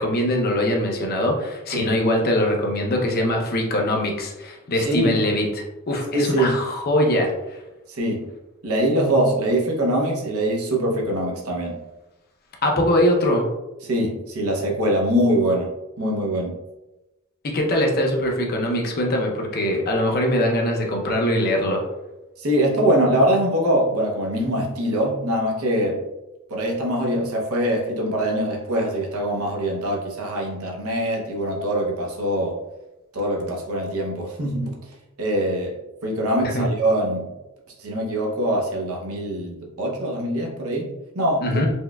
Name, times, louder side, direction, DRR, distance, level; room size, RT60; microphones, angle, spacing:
voice 1, 0.0-7.6 12.6-13.5 17.4-21.8 36.5-36.7 41.4-41.7, left 1 dB, 45° left, 1 dB, 0.6 m, -22 dB
voice 2, 4.8-5.2 6.1-6.6 7.9-8.3 8.6-11.8 13.8-15.7 16.0-16.5 22.4-26.1 26.5-32.6 33.1-34.8 35.2-37.3 37.8-41.6, right 1 dB, 90° right, -1 dB, 0.7 m, -23 dB
4.3 x 2.2 x 2.2 m, 0.99 s
head